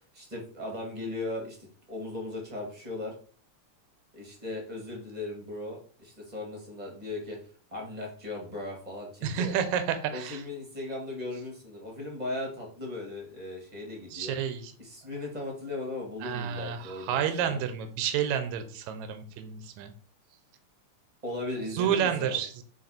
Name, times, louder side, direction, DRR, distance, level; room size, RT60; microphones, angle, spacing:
voice 1, 0.1-1.6 1.9-3.1 4.1-7.4 7.7-9.5 10.1-14.4 14.8-17.2 17.5-17.6 21.2-22.4, left 2 dB, 15° right, 0 dB, 1.5 m, -37 dB
voice 2, 9.2-10.4 14.1-14.7 16.2-19.9 21.7-22.6, right 8 dB, 75° right, 9 dB, 2.1 m, -30 dB
6.6 x 3.9 x 4.3 m, 0.42 s
omnidirectional pair, 3.5 m